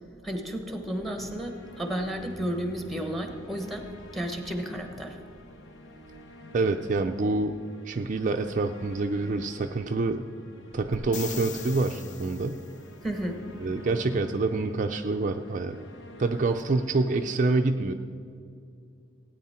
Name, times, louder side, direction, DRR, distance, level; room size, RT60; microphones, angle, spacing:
voice 1, 0.2-5.2 13.0-13.4, right 1 dB, ahead, 5 dB, 1.1 m, -32 dB
sound 1, 0.8-17.4, left 1 dB, 85° left, 1.1 m, -47 dB
voice 2, 6.5-7.6 7.9-10.2 10.7-12.6 13.6-15.8 16.2-17.9, right 3 dB, 40° right, 5 dB, 0.4 m, -26 dB
sound 2, 10.9-12.8 16.6-16.7, left 8 dB, 40° left, 0.5 m, -40 dB
17.0 x 9.2 x 4.3 m, 2.5 s
head